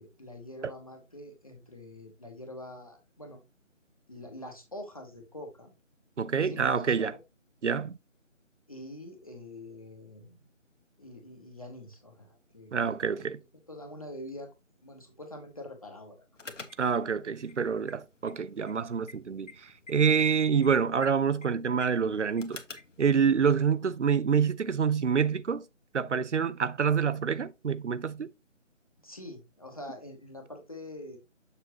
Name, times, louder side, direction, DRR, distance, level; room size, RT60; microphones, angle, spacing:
voice 1, 0.0-3.4 4.1-5.7 6.4-7.1 8.7-10.4 11.0-13.3 13.7-14.5 14.8-16.3 29.0-31.2, left 1 dB, 30° left, 0.9 m, -45 dB
voice 2, 6.2-7.2 7.6-8.0 12.7-13.4 16.8-22.6 23.0-25.6 25.9-28.3, right 6 dB, 65° right, 0.6 m, -27 dB
sound 1, 16.4-23.0, left 4 dB, 70° left, 1.2 m, -50 dB
6.9 x 5.6 x 2.8 m
figure-of-eight pair, 165°, 39 cm